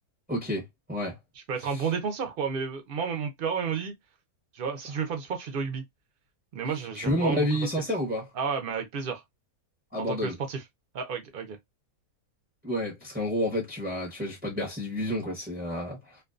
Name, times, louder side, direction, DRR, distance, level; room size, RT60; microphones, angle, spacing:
voice 1, 0.3-1.1 6.9-8.3 9.9-10.4 12.6-16.2, equal, 10° right, 0.5 m, -30 dB
voice 2, 1.5-3.9 4.5-5.8 6.5-7.7 8.3-9.2 10.0-10.6 10.9-11.6, right 6 dB, 60° right, 0.5 m, -31 dB
2.5 x 2.2 x 2.3 m
omnidirectional pair, 1.6 m